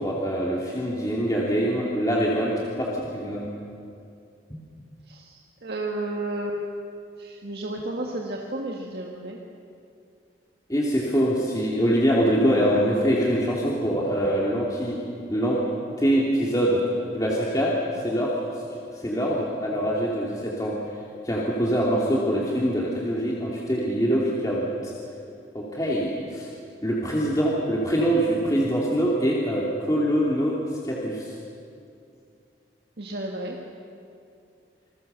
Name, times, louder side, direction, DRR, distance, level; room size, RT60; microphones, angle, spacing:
voice 1, 0.0-3.5 10.7-15.0 15.3-15.6 16.0-16.8 17.1-21.0 21.2-24.9 25.5-26.5 26.8-30.6 30.8-31.3, equal, 20° left, -4 dB, 2.7 m, -24 dB
voice 2, 5.1-6.6 7.2-9.4 12.5-12.8 33.0-33.6, right 1 dB, 65° right, 0 dB, 1.9 m, -32 dB
27.5 x 21.0 x 6.9 m, 2.5 s
head